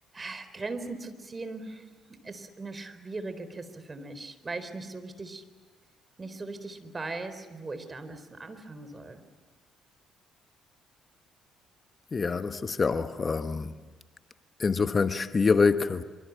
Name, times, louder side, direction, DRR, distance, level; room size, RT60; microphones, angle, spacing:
voice 1, 0.1-5.4 6.2-9.2, right 3 dB, 30° right, 3.9 m, -39 dB
voice 2, 12.1-13.7 14.6-16.0, left 4 dB, 40° left, 1.1 m, -25 dB
25.5 x 25.5 x 8.1 m
hypercardioid pair, 50°, 0 cm